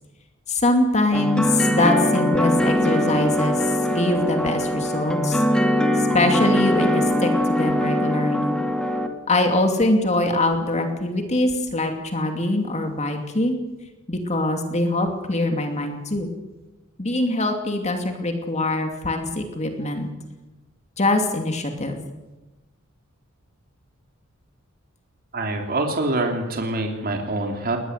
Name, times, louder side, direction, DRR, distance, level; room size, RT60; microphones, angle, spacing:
voice 1, 0.5-5.4 6.0-8.6 9.3-13.6 14.1-16.3 17.0-20.1 21.0-22.0, left 2 dB, 35° left, 5 dB, 2.6 m, -23 dB
sound 1, 1.1-9.1, left 1 dB, 5° left, 2.3 m, -21 dB
voice 2, 25.3-27.8, right 2 dB, 45° right, 3 dB, 3.2 m, -25 dB
20.5 x 20.0 x 8.1 m, 1.1 s
head